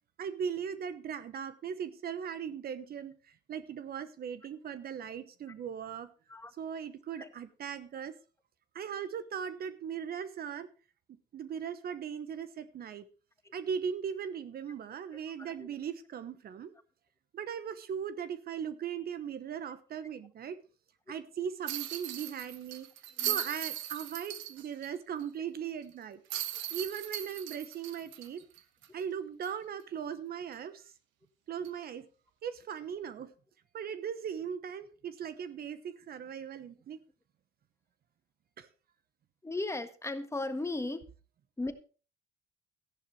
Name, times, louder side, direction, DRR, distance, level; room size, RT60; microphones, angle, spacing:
voice 1, 0.2-6.1 6.6-8.1 8.7-10.7 11.3-13.1 13.5-16.7 17.3-20.6 21.1-22.9 23.3-26.2 26.7-28.4 28.9-30.9 31.5-32.0 32.4-33.3 33.7-37.0 38.6-38.7, right 7 dB, 50° right, 13 dB, 1.1 m, -38 dB
sound 1, 21.7-24.9 25.2-25.3 26.3-29.0 29.4-29.5 31.6-31.8, right 12 dB, 75° right, 1.2 m, -38 dB
voice 2, 39.4-41.0 41.6-41.7, left 2 dB, 15° left, 9 dB, 1.5 m, -35 dB
14.0 x 11.0 x 3.2 m, 0.37 s
supercardioid pair, 80°, 19 cm